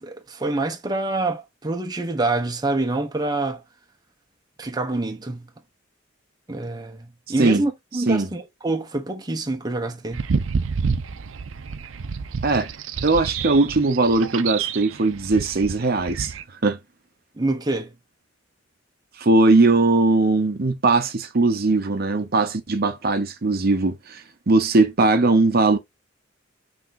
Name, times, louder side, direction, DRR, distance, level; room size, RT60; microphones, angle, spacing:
voice 1, 0.0-3.6 4.6-5.5 6.5-10.3 17.4-17.9, right 2 dB, 20° right, 0.8 m, -26 dB
sound 1, 10.1-16.4, right 5 dB, 85° right, 0.5 m, -29 dB
voice 2, 13.0-16.8 19.2-25.8, right 3 dB, 50° right, 0.7 m, -19 dB
5.8 x 3.4 x 2.6 m
head